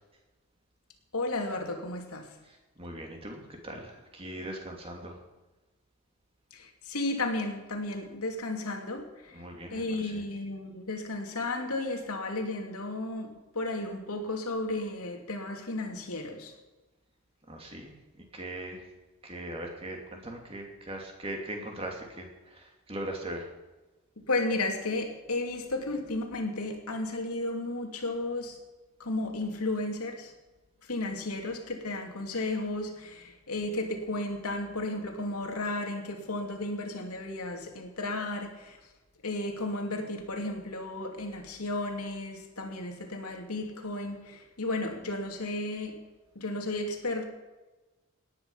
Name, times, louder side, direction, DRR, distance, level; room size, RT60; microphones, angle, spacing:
voice 1, 1.1-2.3 6.5-9.4 9.7-16.5 24.2-28.6 29.0-30.3 30.8-38.8 39.2-46.0 46.3-47.3, left 2 dB, 85° left, 3 dB, 2.7 m, -33 dB
voice 2, 2.8-5.2 9.3-9.8 17.5-17.9 18.3-18.8 19.2-22.6 22.9-23.4, right 1 dB, 25° right, 1 dB, 2.8 m, -39 dB
18.0 x 10.5 x 5.6 m, 1.2 s
head